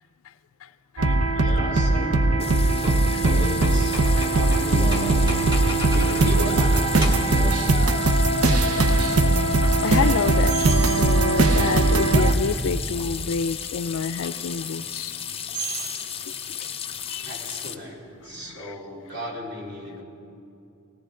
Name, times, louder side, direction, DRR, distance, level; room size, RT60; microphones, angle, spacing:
sound 1, 1.0-12.3, right 2 dB, 80° right, 0.9 m, -20 dB
voice 1, 1.4-8.0 17.2-20.0, left 1 dB, 55° right, -4 dB, 3.5 m, -36 dB
sound 2, 2.0-6.4 6.7-7.4 9.6-9.8 10.5-11.1 11.8-11.9 14.2-14.4 15.5-16.1, right 2 dB, 20° right, 1.6 m, -34 dB
sound 3, 2.4-17.8, left 8 dB, 30° left, 0.6 m, -35 dB
voice 2, 9.8-10.6 10.9-15.2 16.3-16.7 17.1-17.3 18.3-18.7, left 5 dB, 70° left, 14 dB, 0.4 m, -28 dB
19.0 x 17.0 x 3.8 m, 2.6 s
head